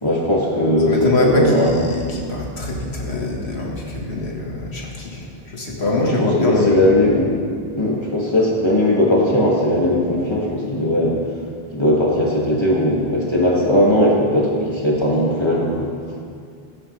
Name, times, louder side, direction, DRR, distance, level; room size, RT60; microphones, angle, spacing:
voice 1, 0.0-1.7 6.0-7.3 7.8-11.2 11.7-15.9, left 1 dB, 25° left, -5 dB, 2.2 m, -18 dB
voice 2, 0.9-6.9, left 2 dB, 90° left, -2 dB, 2.0 m, -23 dB
15.0 x 11.5 x 3.3 m, 2.3 s
omnidirectional pair, 1.0 m